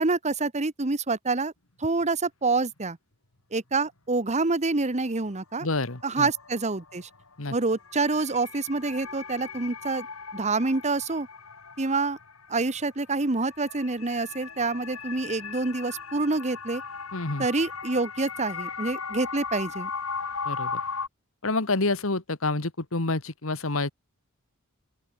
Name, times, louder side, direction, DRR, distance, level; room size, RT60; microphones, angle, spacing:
voice 1, 0.0-1.5 1.8-3.0 3.5-5.7 6.0-7.1 7.5-10.1 10.3-11.3 11.8-12.2 12.5-16.8 17.4-19.9, right 3 dB, 35° right, 1.2 m, -27 dB
sound 1, 2.0-2.1 5.3-5.4 5.7-21.1, left 5 dB, 90° left, 4.6 m, -38 dB
voice 2, 5.6-6.3 7.4-7.6 17.1-17.5 20.5-20.8 21.4-23.9, left 2 dB, 70° left, 2.0 m, -28 dB
open air
head